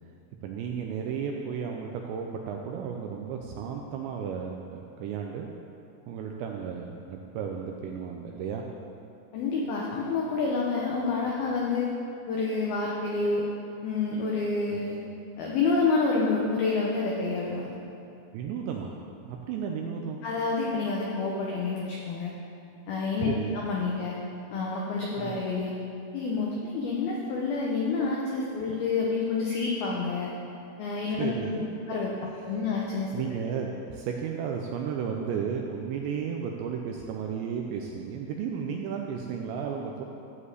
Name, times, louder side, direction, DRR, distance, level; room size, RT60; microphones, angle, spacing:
voice 1, 0.4-5.5 6.1-8.6 14.7-14.8 18.3-18.9 19.2-20.2 23.2-23.6 25.2-25.3 31.2-31.7 32.5-32.6 33.1-40.0, right 7 dB, 80° right, 1 dB, 2.6 m, -33 dB
voice 2, 9.3-11.9 12.3-13.4 13.8-15.0 15.4-17.8 20.2-22.3 22.9-24.2 24.5-25.7 26.1-30.3 30.8-31.6 31.9-32.1 32.4-33.3, left 4 dB, 85° left, -3 dB, 2.1 m, -28 dB
13.0 x 5.1 x 8.1 m, 2.8 s
omnidirectional pair, 5.8 m